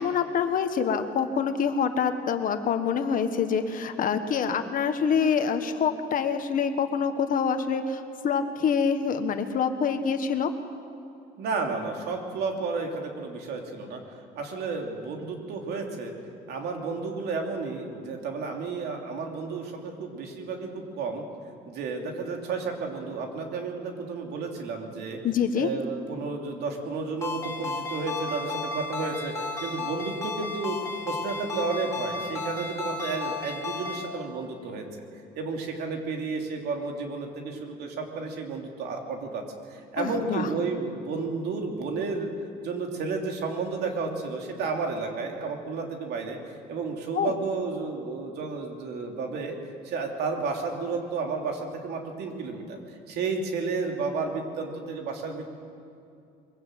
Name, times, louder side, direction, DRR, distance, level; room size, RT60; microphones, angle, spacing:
voice 1, 0.0-10.5 25.2-25.7 40.0-40.5 47.1-47.3, left 6 dB, 55° left, 8 dB, 1.5 m, -26 dB
voice 2, 11.4-16.1 16.5-21.2 21.7-25.2 25.5-30.8 31.1-34.9 35.3-42.3 42.6-46.4 46.7-49.5 49.8-55.5, right 4 dB, 75° right, 2 dB, 2.9 m, -32 dB
Ringtone, 27.2-34.1, left 3 dB, 15° left, 3.2 m, -34 dB
23.0 x 16.5 x 7.7 m, 2.6 s
cardioid pair, 110°, 17 cm